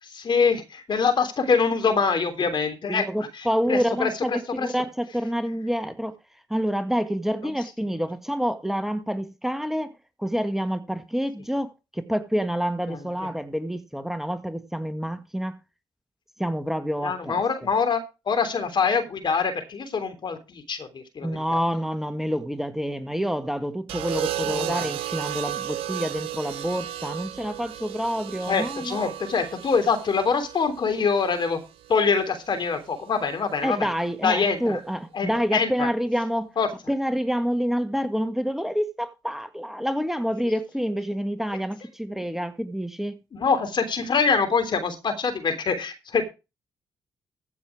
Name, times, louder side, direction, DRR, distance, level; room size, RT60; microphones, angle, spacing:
voice 1, 0.0-4.7 7.4-7.5 12.9-13.3 17.0-21.6 24.4-24.8 28.5-31.6 31.9-33.9 34.2-34.8 35.1-35.9 36.6-36.7 43.3-46.2, left 5 dB, 55° left, 3.3 m, -25 dB
voice 2, 2.9-6.2 6.5-9.9 10.2-15.6 16.4-17.4 21.2-29.1 33.6-36.5 36.9-43.2, equal, 5° right, 1.6 m, -28 dB
sound 1, 23.9-32.0 33.3-33.7, right 12 dB, 80° right, 1.0 m, -34 dB
15.0 x 6.7 x 4.8 m
hypercardioid pair, 45°, 9 cm